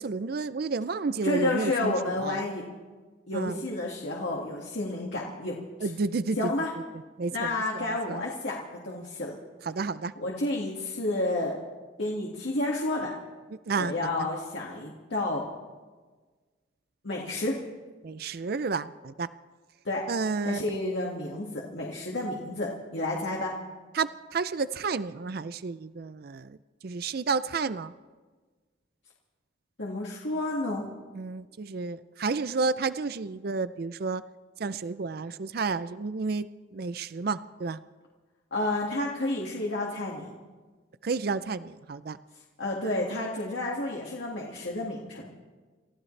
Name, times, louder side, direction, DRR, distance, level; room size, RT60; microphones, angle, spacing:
voice 1, 0.0-1.9 2.2-2.4 3.3-3.6 5.8-6.4 7.2-8.2 9.7-10.1 13.7-13.9 14.2-14.3 18.0-19.3 20.1-20.6 23.9-26.6 26.8-27.9 31.2-34.2 34.6-37.8 41.0-42.2, right 4 dB, 50° right, 14 dB, 0.4 m, -31 dB
voice 2, 1.2-2.6 3.3-5.5 5.8-5.9 6.4-6.7 7.3-9.4 10.2-11.6 12.0-13.1 13.8-15.4 17.0-17.6 19.8-20.0 20.4-23.5 29.8-30.8 38.5-40.3 42.6-45.3, left 2 dB, 70° left, -3 dB, 2.0 m, -30 dB
29.5 x 14.5 x 3.3 m, 1.4 s
head